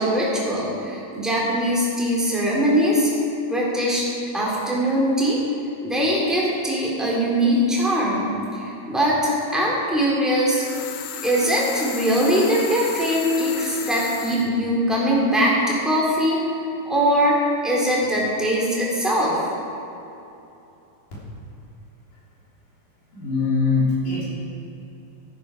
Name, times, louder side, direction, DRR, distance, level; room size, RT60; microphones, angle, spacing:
voice 1, 0.0-3.1 3.5-4.0 4.3-5.4 5.8-8.3 8.6-10.6 11.2-16.4 16.8-19.4, equal, ahead, -5 dB, 0.6 m, -21 dB
sound 1, 10.5-14.5, left 9 dB, 85° left, 2.7 m, -34 dB
voice 2, 23.1-24.2, left 4 dB, 55° left, -7 dB, 4.6 m, -22 dB
13.5 x 11.0 x 4.9 m, 2.9 s
omnidirectional pair, 4.9 m